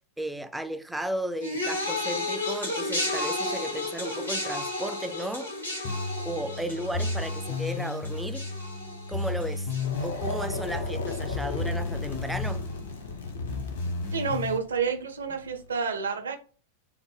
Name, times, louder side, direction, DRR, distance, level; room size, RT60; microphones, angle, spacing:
voice 1, 0.2-5.5 6.2-8.5 9.1-9.7 10.0-12.7 15.3-15.4, right 1 dB, 5° right, 0.3 m, -34 dB
sound 1, 1.4-10.8 11.1-11.6 12.4-12.5, left 2 dB, 90° left, 1.2 m, -33 dB
sound 2, 5.8-14.6, left 3 dB, 50° left, 0.9 m, -33 dB
sound 3, 9.8-15.8, left 4 dB, 70° left, 0.7 m, -36 dB
voice 2, 14.1-16.4, right 5 dB, 70° right, 0.6 m, -29 dB
3.6 x 2.1 x 3.2 m
figure-of-eight pair, 90°, 0 cm